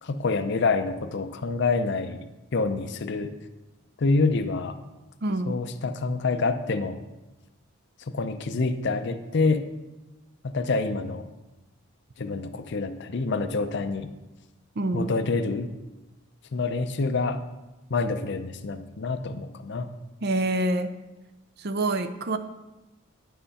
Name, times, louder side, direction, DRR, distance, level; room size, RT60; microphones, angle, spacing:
voice 1, 0.0-2.3 2.5-3.3 4.0-4.8 5.5-7.0 8.1-9.7 10.4-11.2 12.2-14.1 14.9-15.7 16.5-17.4 17.9-19.9, left 3 dB, 55° left, 9 dB, 0.5 m, -27 dB
voice 2, 5.2-5.6 14.8-15.1 20.2-20.9 21.6-22.4, right 2 dB, 50° right, 10 dB, 0.5 m, -26 dB
10.0 x 5.6 x 4.1 m, 1.1 s
head